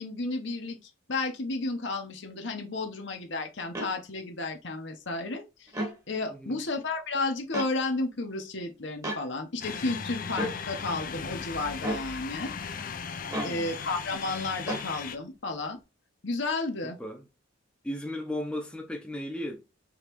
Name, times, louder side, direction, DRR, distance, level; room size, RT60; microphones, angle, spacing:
voice 1, 0.0-12.5 13.4-15.8 16.2-17.0, left 3 dB, 65° left, 1.0 m, -32 dB
sound 1, 3.7-3.9 5.7-6.0 7.5-7.7 9.0-9.2 10.4-10.6 11.8-12.1 13.3-13.6 14.7-14.9, equal, 15° right, 1.2 m, -32 dB
voice 2, 6.3-6.6 13.2-13.7 16.8-17.2 17.8-19.6, left 1 dB, 5° left, 0.8 m, -36 dB
sound 2, 9.6-15.2, left 6 dB, 45° left, 0.5 m, -37 dB
5.2 x 3.1 x 3.0 m
head